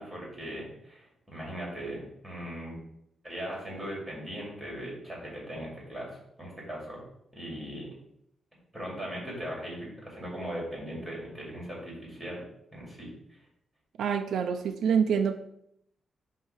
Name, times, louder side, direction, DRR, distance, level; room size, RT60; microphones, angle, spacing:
voice 1, 0.0-2.8 3.2-7.0 7.3-7.9 8.7-12.4 12.7-13.1, equal, 5° right, -4 dB, 2.4 m, -39 dB
voice 2, 14.0-15.4, right 7 dB, 75° right, 7 dB, 0.4 m, -26 dB
7.8 x 2.8 x 5.8 m, 0.76 s
wide cardioid pair, 180°, 0 cm